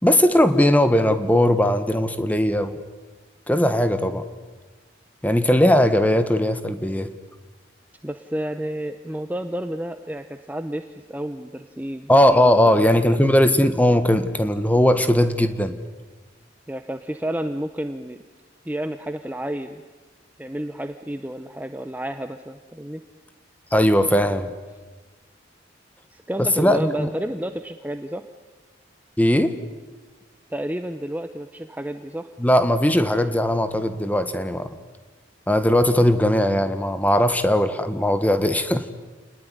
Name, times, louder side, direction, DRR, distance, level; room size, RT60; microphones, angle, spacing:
voice 1, 0.0-2.8 3.5-4.3 5.2-7.1 12.1-15.8 23.7-24.5 26.4-27.1 29.2-29.6 32.4-34.7 35.5-38.9, left 1 dB, 10° left, 10 dB, 1.5 m, -19 dB
voice 2, 8.0-12.4 12.7-13.2 16.7-18.2 18.6-19.8 20.4-23.0 26.1-28.2 30.5-32.3, right 1 dB, 10° right, 9 dB, 0.8 m, -31 dB
29.5 x 20.0 x 10.0 m, 1.3 s
head